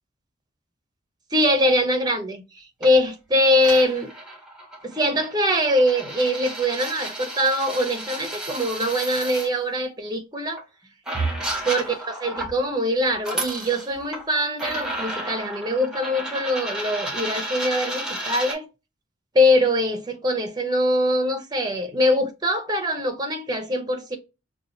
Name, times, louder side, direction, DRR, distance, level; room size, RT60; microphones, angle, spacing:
voice 1, 1.3-4.1 4.8-10.6 11.6-18.7 19.3-24.2, left 1 dB, 20° right, 0.7 m, -23 dB
sound 1, 2.8-3.0 3.6-9.5 10.6-10.7 11.1-12.6 13.1-14.2 14.6-18.5, right 1 dB, 5° right, 1.0 m, -32 dB
5.4 x 2.3 x 2.6 m
head